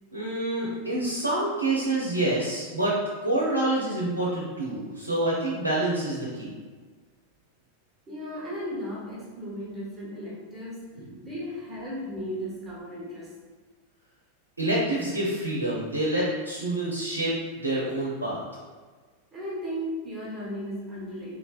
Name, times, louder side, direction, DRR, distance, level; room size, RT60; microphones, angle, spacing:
voice 1, 0.1-6.5 11.1-11.2 14.6-18.4, right 1 dB, 80° right, -5 dB, 0.6 m, -27 dB
voice 2, 8.1-13.3 19.3-21.4, equal, 20° right, -6 dB, 1.1 m, -36 dB
3.5 x 3.2 x 2.3 m, 1.4 s
figure-of-eight pair, 90°, 0 cm